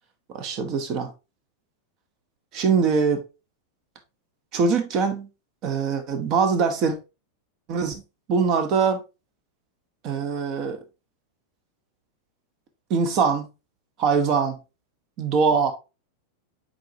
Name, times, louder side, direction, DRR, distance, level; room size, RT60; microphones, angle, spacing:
voice 1, 0.3-1.1 2.5-3.2 4.5-5.3 5.6-7.0 7.7-8.0 8.3-9.0 10.0-10.8 12.9-13.5 14.0-14.6 15.2-15.7, right 5 dB, 40° right, 1.2 m, -22 dB
7.5 x 4.4 x 2.8 m
figure-of-eight pair, 90°, 0 cm